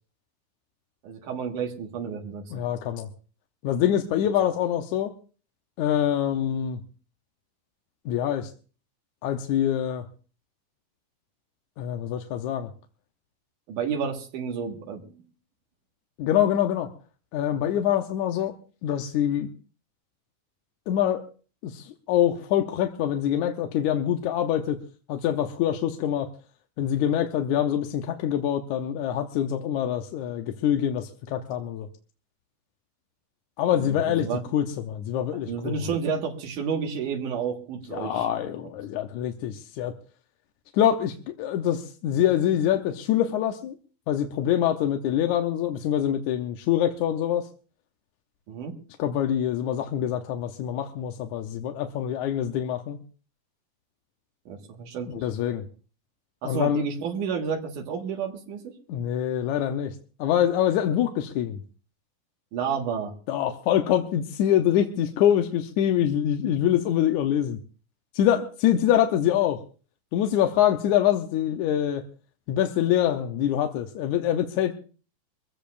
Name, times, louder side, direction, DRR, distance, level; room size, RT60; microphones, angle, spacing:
voice 1, 1.0-2.4 13.7-15.2 33.7-34.4 35.3-38.3 48.5-48.8 54.5-55.3 56.4-58.7 62.5-63.1, right 6 dB, 85° right, 2 dB, 3.2 m, -31 dB
voice 2, 2.5-3.1 3.6-5.1 5.8-6.8 8.1-8.5 9.2-10.0 11.8-12.7 16.2-16.9 17.3-18.5 18.8-19.5 20.9-21.2 21.6-24.8 25.1-26.3 26.8-31.9 33.6-35.7 37.9-39.9 40.7-43.8 44.1-47.5 49.0-53.0 55.1-55.7 56.4-56.9 58.9-61.6 63.3-67.6 68.1-69.6 70.1-72.0 72.5-74.7, left 10 dB, 75° left, 5 dB, 2.2 m, -25 dB
23.5 x 15.5 x 2.5 m, 0.38 s
omnidirectional pair, 3.5 m